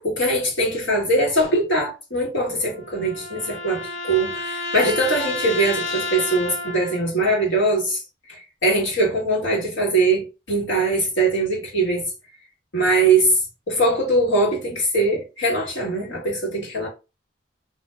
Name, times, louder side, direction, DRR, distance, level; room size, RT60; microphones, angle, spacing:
voice 1, 0.0-8.0 8.3-12.1 12.7-13.4 13.7-16.9, right 2 dB, 90° left, 1.4 m, -21 dB
sound 1, 2.5-7.1, left 2 dB, 45° left, 0.8 m, -31 dB
2.5 x 2.1 x 3.3 m
head